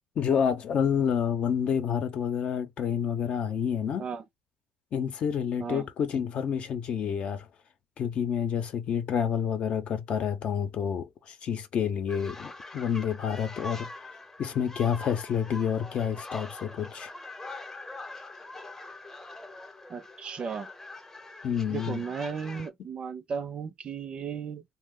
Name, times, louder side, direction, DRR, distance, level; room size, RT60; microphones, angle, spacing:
voice 1, 0.2-4.0 4.9-7.5 8.0-13.9 14.4-17.1 21.4-22.0, left 7 dB, 55° left, 0.7 m, -29 dB
sound 1, 12.1-22.7, left 2 dB, 15° left, 0.7 m, -43 dB
voice 2, 19.9-20.7 21.7-24.6, right 6 dB, 45° right, 0.5 m, -35 dB
2.7 x 2.1 x 3.7 m
supercardioid pair, 85°, 2 cm